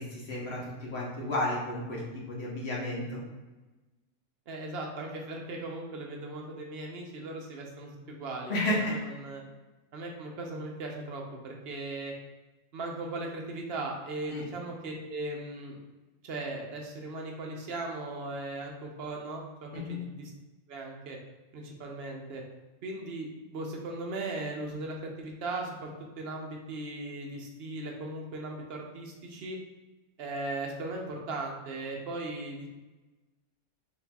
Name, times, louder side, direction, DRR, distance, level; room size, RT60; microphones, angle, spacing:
voice 1, 0.0-3.2 8.5-8.9 14.3-14.4 19.7-20.0, left 1 dB, 50° left, -4 dB, 1.2 m, -32 dB
voice 2, 4.5-9.4 9.9-12.1 12.7-15.8 16.2-20.3 20.7-21.2 21.5-22.4 22.8-29.6 30.2-32.7, right 2 dB, 55° right, 1 dB, 0.7 m, -38 dB
4.2 x 4.0 x 2.3 m, 1.1 s
omnidirectional pair, 1.5 m